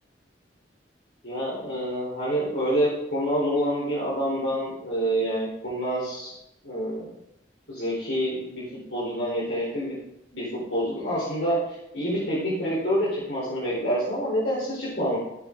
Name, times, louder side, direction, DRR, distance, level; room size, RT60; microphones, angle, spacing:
voice 1, 1.2-6.3 6.6-7.1 7.7-8.6 8.9-9.9 10.3-10.4 10.7-15.2, equal, 85° left, -8 dB, 4.5 m, -27 dB
16.5 x 7.4 x 4.0 m, 0.84 s
head